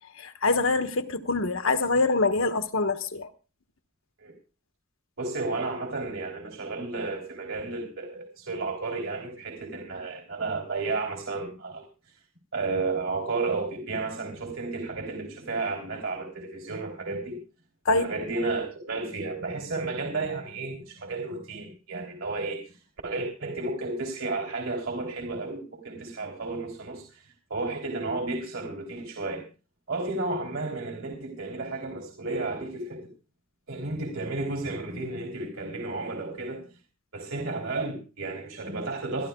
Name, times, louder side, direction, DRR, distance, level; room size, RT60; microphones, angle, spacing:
voice 1, 0.2-3.3 17.8-18.1, left 3 dB, 80° left, 1.1 m, -25 dB
voice 2, 5.2-11.8 12.5-17.4 17.9-22.6 23.0-27.2 27.5-29.4 29.9-33.1 33.7-36.6 37.1-39.3, right 3 dB, 80° right, 3.3 m, -32 dB
26.5 x 12.5 x 2.3 m
head